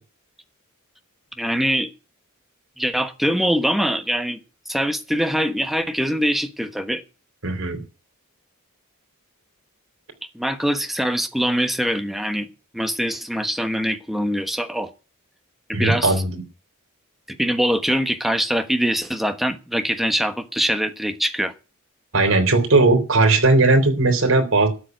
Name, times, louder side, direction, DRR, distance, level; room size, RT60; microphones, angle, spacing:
voice 1, 1.4-1.9 2.8-4.4 4.7-7.0 10.3-12.5 12.7-14.9 15.7-16.1 17.4-21.5, equal, ahead, 7 dB, 1.2 m, -23 dB
voice 2, 7.4-7.8 15.7-16.4 22.1-24.7, right 3 dB, 65° right, 4 dB, 3.8 m, -17 dB
13.0 x 7.2 x 9.2 m, 0.33 s
head